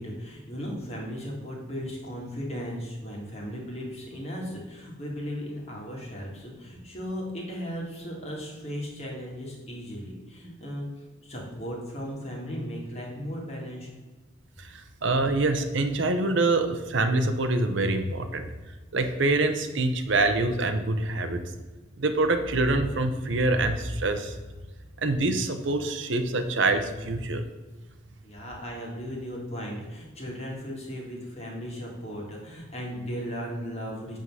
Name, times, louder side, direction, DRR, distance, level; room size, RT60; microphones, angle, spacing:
voice 1, 0.0-10.8 11.2-13.9 28.2-34.2, equal, 30° left, -2 dB, 2.0 m, -36 dB
voice 2, 15.0-18.5 18.9-21.4 22.0-24.3 25.0-27.4, right 2 dB, 65° right, 8 dB, 0.8 m, -25 dB
8.1 x 3.8 x 6.1 m, 1.2 s
head